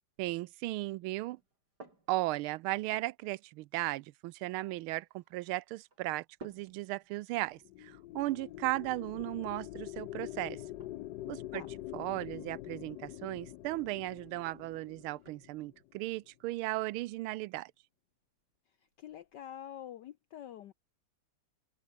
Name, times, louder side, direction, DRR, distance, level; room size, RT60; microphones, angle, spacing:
voice 1, 0.2-1.4 2.1-10.6 11.3-11.6 11.9-17.7, right 18 dB, 80° right, 1.4 m, -36 dB
sound 1, 1.4-19.4, right 2 dB, 45° right, 6.4 m, -62 dB
sound 2, 7.5-16.0, left 15 dB, 80° left, 0.9 m, -45 dB
voice 2, 19.0-20.7, left 10 dB, 65° left, 1.2 m, -46 dB
omnidirectional pair, 2.4 m